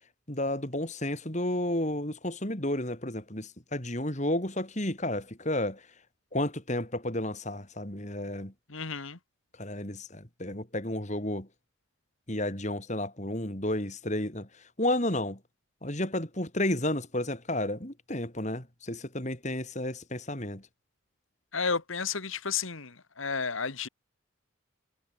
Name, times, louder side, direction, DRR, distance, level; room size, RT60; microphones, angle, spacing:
voice 1, 0.3-5.8 6.3-8.5 9.6-11.5 12.3-15.4 15.8-20.7, left 1 dB, 35° left, 4.4 m, -32 dB
voice 2, 8.7-9.2 21.5-23.9, left 5 dB, 75° left, 2.0 m, -32 dB
head